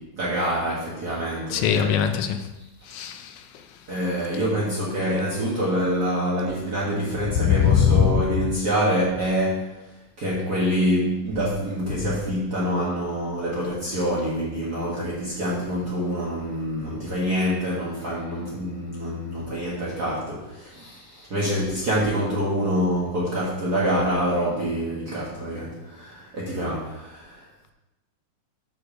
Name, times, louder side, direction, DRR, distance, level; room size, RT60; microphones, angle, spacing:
voice 1, 0.0-1.9 3.9-9.8 10.2-27.4, equal, 40° right, -5 dB, 1.5 m, -26 dB
voice 2, 1.5-2.4 2.9-3.2 7.4-8.2, left 8 dB, 80° left, 7 dB, 2.1 m, -20 dB
8.5 x 4.5 x 6.5 m, 0.99 s
omnidirectional pair, 3.6 m